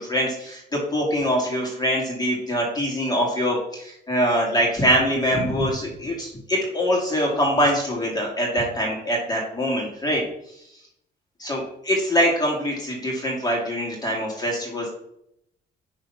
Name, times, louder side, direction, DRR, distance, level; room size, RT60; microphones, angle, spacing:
voice 1, 0.0-10.2 11.4-14.9, equal, 20° left, -2 dB, 2.6 m, -23 dB
10.5 x 3.9 x 5.8 m, 0.77 s
cardioid pair, 130°, 19 cm